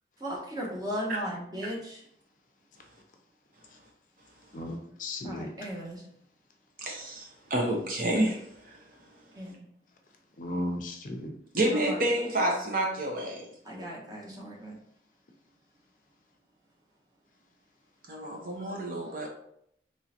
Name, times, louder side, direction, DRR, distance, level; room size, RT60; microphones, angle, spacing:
voice 1, 0.2-2.0 5.2-6.0 9.3-9.7 11.7-12.0 13.6-14.8, equal, 20° right, -3 dB, 0.8 m, -36 dB
voice 2, 4.5-5.5 10.4-11.3, left 1 dB, 45° left, 3 dB, 0.5 m, -35 dB
voice 3, 6.8-8.8 11.5-13.5 18.1-19.3, right 1 dB, 50° right, 0 dB, 0.8 m, -29 dB
3.6 x 3.1 x 2.8 m, 0.69 s
head